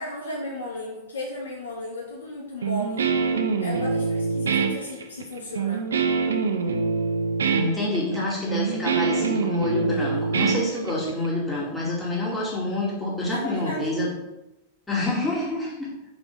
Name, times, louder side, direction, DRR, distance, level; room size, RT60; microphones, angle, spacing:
voice 1, 0.0-3.1 3.6-5.8 13.3-13.9, left 1 dB, 70° left, -5 dB, 3.0 m, -35 dB
Guitar, 2.6-11.3, right 5 dB, 70° right, 0.7 m, -25 dB
voice 2, 7.5-14.1 14.9-15.9, left 2 dB, 10° left, -5 dB, 2.6 m, -27 dB
5.8 x 5.4 x 5.4 m, 0.92 s
figure-of-eight pair, 90°, 0 cm